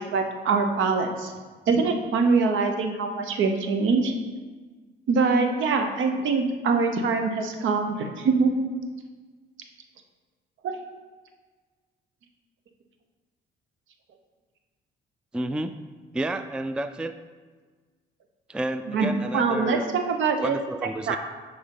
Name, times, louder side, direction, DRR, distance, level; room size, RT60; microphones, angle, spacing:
voice 1, 0.0-1.3 1.7-4.1 5.1-8.6 10.6-10.8 18.9-20.6 21.1-21.2, right 4 dB, 75° right, 5 dB, 0.9 m, -24 dB
voice 2, 15.3-15.7 16.1-17.1 18.5-19.8 20.4-21.2, right 1 dB, 5° right, 10 dB, 0.3 m, -30 dB
10.0 x 4.2 x 3.9 m, 1.4 s
cardioid pair, 90°, 20 cm